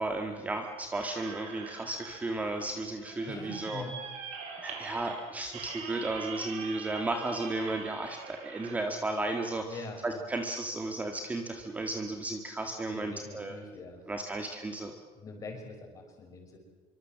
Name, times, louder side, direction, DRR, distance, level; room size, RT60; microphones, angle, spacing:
voice 1, 0.0-3.8 4.6-13.6 14.1-14.9, right 2 dB, 10° right, 4 dB, 1.7 m, -34 dB
sound 1, 0.9-8.8, right 6 dB, 70° right, 5.8 m, -44 dB
voice 2, 3.3-4.0 9.6-10.2 12.9-14.0 15.1-16.6, left 3 dB, 30° left, 2 dB, 5.9 m, -43 dB
26.0 x 24.0 x 7.5 m, 1.3 s
cardioid pair, 175°, 12 cm